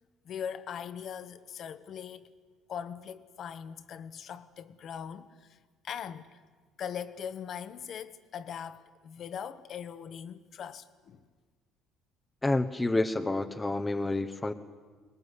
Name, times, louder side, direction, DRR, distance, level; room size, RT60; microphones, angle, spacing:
voice 1, 0.2-2.3 2.7-5.6 5.8-6.4 6.8-11.2, left 8 dB, 55° left, 1.3 m, -40 dB
voice 2, 12.4-14.5, left 2 dB, 15° left, 1.1 m, -29 dB
23.0 x 19.5 x 9.9 m
cardioid pair, 95°, 0 cm